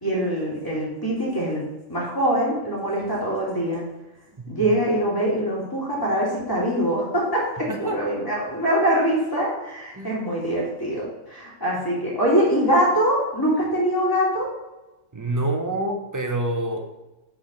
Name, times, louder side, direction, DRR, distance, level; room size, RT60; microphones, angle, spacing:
voice 1, 0.0-1.6 1.9-3.8 4.5-7.5 7.8-14.5, equal, 15° left, -6 dB, 2.5 m, -23 dB
voice 2, 4.4-4.7 7.7-8.0 9.9-10.2 15.1-16.9, right 1 dB, 20° right, 3 dB, 0.6 m, -27 dB
5.8 x 5.1 x 5.2 m, 1.0 s
omnidirectional pair, 1.4 m